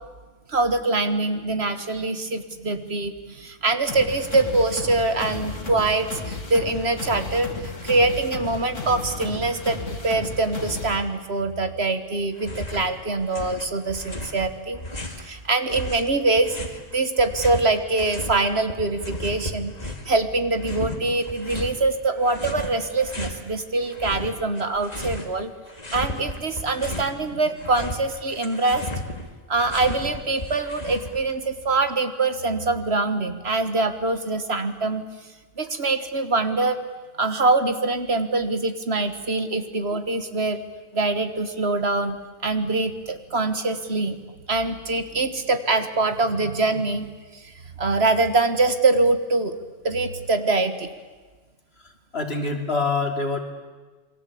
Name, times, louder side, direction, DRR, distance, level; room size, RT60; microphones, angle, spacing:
voice 1, 0.5-14.8 15.2-25.5 25.9-28.9 29.5-35.0 35.6-36.8 37.2-40.6 40.9-42.2 42.4-44.2 44.5-47.1 47.3-47.4 47.8-49.6 49.8-50.9, right 3 dB, 55° right, 9 dB, 1.7 m, -24 dB
sound 1, 3.9-11.0, left 3 dB, 70° left, 3.0 m, -34 dB
sound 2, 12.4-12.9 13.2-15.3 15.7-18.4 18.7-20.2 20.6-21.8 22.2-23.4 23.8-25.4 25.6-27.1 27.5-31.3, left 1 dB, 30° left, 2.4 m, -34 dB
voice 2, 52.1-53.4, left 3 dB, 50° left, 4 dB, 3.0 m, -25 dB
28.0 x 22.5 x 8.5 m, 1.3 s
omnidirectional pair, 1.3 m